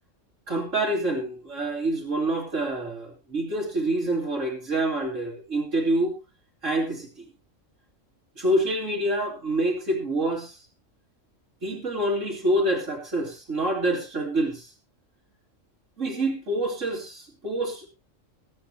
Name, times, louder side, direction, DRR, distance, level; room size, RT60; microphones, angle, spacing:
voice 1, 0.5-6.1 6.6-7.3 8.4-10.6 11.6-14.7 16.0-17.9, right 1 dB, 75° right, -2 dB, 3.3 m, -27 dB
21.0 x 9.6 x 2.9 m, 0.27 s
omnidirectional pair, 1.3 m